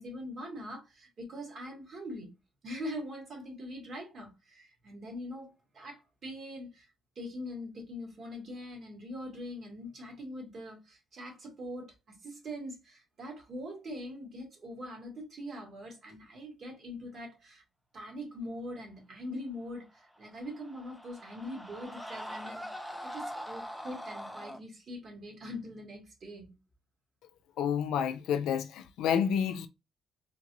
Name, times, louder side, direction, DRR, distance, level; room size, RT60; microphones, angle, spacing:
voice 1, 0.0-2.3 2.6-6.9 7.2-17.6 17.9-22.7 23.0-26.6, equal, 50° right, 1.9 m, -42 dB
Screaming, 20.1-24.6, equal, ahead, 0.5 m, -43 dB
voice 2, 27.6-29.7, left 8 dB, 85° left, 0.4 m, -29 dB
3.8 x 2.5 x 2.9 m
cardioid pair, 90°, 0 cm